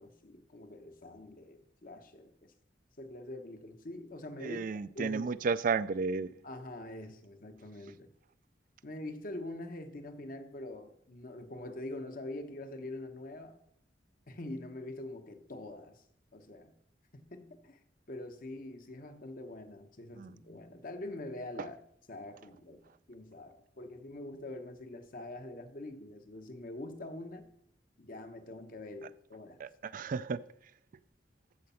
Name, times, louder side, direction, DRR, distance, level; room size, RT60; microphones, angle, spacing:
voice 1, 0.0-2.5 3.0-4.6 4.9-5.3 6.4-8.1 8.8-13.6 14.3-16.0 16.3-16.7 17.1-17.8 18.1-21.8 22.1-22.8 23.1-27.5 28.0-29.6, left 1 dB, 50° left, 1.1 m, -44 dB
voice 2, 4.4-6.3 20.2-20.3 29.6-30.4, right 5 dB, 50° right, 0.4 m, -33 dB
14.0 x 5.2 x 5.7 m
head